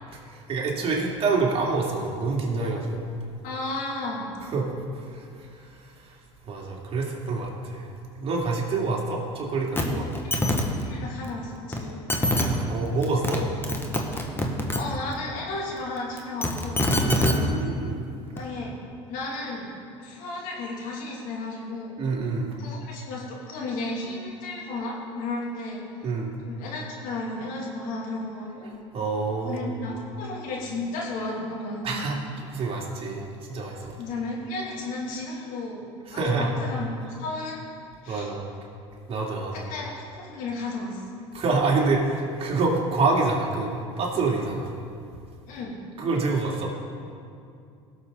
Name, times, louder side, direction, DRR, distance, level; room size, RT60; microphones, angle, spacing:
voice 1, 0.2-3.0 4.4-4.7 4.9-6.1 6.5-7.9 8.2-10.1 12.4-13.4 17.0-18.1 22.0-22.5 26.0-26.3 28.9-29.8 31.8-32.2 32.5-34.0 36.1-36.5 38.1-38.5 39.1-39.7 41.3-44.7 46.0-46.7, right 3 dB, 40° right, -2 dB, 2.7 m, -27 dB
voice 2, 3.4-4.3 10.4-10.5 10.8-12.0 14.7-16.9 18.3-18.7 19.1-19.7 20.0-21.9 22.6-25.8 26.4-28.7 29.4-31.9 34.0-36.9 37.2-37.6 38.0-38.3 39.5-41.0 45.5-45.8, left 2 dB, 65° left, -3 dB, 2.8 m, -33 dB
sound 1, 9.8-9.9 10.1-10.6 11.7-11.8 12.1-12.4 13.0-13.4 13.6-14.8 16.2-17.3 18.4-18.5, left 1 dB, 15° left, 1.8 m, -24 dB
17.5 x 7.0 x 4.0 m, 2.4 s
hypercardioid pair, 80°, 15 cm